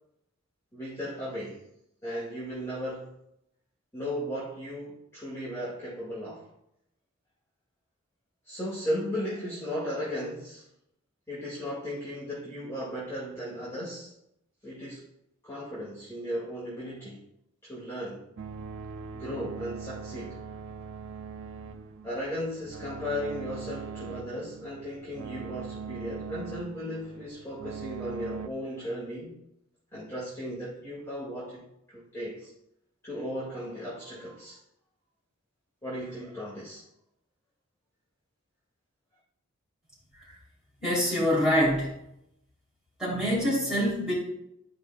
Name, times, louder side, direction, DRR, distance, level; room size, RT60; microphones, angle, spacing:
voice 1, 0.7-1.6 2.0-3.1 3.9-6.4 8.5-10.7 11.3-14.1 14.6-15.0 15.4-17.2 17.6-18.2 19.1-20.4 22.0-29.3 29.9-32.5 33.0-34.6 35.8-36.8, equal, 10° left, -9 dB, 2.0 m, -36 dB
sound 1, 18.4-28.5, right 5 dB, 65° right, 0.5 m, -41 dB
voice 2, 40.8-41.9 43.0-44.1, equal, 5° right, -7 dB, 3.1 m, -25 dB
12.5 x 5.2 x 2.3 m, 0.81 s
head